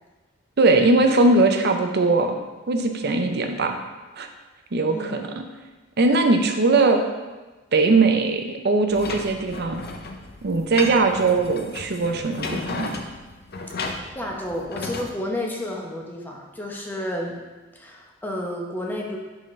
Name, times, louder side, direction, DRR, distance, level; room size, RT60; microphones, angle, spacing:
voice 1, 0.6-2.4 2.7-3.8 4.2-4.3 4.7-5.4 6.0-7.0 7.7-9.8 10.4-13.0, right 3 dB, 50° right, 5 dB, 0.6 m, -20 dB
voice 2, 4.9-5.2 14.1-17.4 17.7-19.2, left 1 dB, 10° left, -1 dB, 0.8 m, -31 dB
sound 1, 8.9-15.1, left 3 dB, 50° left, 0.6 m, -34 dB
11.0 x 3.8 x 3.2 m, 1.2 s
head